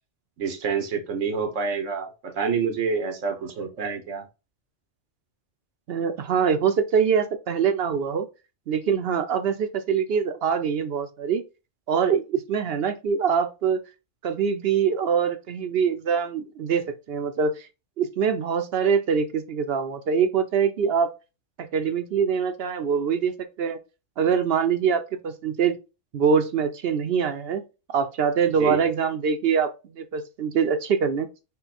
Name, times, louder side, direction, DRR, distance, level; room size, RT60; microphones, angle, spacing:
voice 1, 0.4-4.2 28.6-28.8, right 5 dB, 90° right, 1.2 m, -27 dB
voice 2, 5.9-8.3 8.7-11.4 11.9-13.8 14.2-17.7 18.0-21.1 21.6-23.8 24.2-25.8 26.1-27.6 27.9-31.3, right 6 dB, 65° right, 0.7 m, -24 dB
5.5 x 2.2 x 4.1 m
omnidirectional pair, 1.2 m